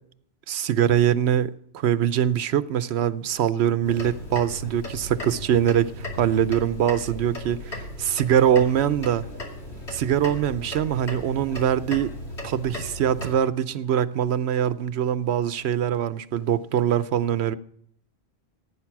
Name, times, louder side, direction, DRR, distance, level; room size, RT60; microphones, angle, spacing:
voice 1, 0.5-9.2 9.9-12.1 12.4-17.6, right 9 dB, 80° right, 0.9 m, -23 dB
sound 1, 3.8-13.3, left 1 dB, 85° left, 2.7 m, -36 dB
15.5 x 9.6 x 5.9 m
omnidirectional pair, 1.1 m